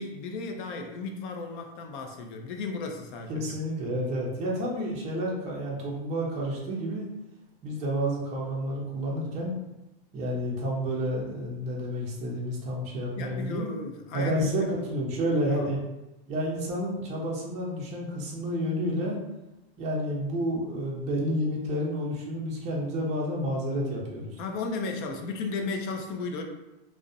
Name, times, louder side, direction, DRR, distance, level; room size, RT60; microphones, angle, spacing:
voice 1, 0.0-3.6 13.1-14.8 15.5-15.7 24.4-26.4, left 3 dB, 55° left, 4 dB, 0.4 m, -35 dB
voice 2, 3.3-7.1 7.6-9.6 10.1-13.7 14.1-15.8 16.3-19.2 19.8-24.4, equal, 25° right, -4 dB, 0.5 m, -30 dB
2.4 x 2.0 x 2.5 m, 0.96 s
supercardioid pair, 150°, 30 cm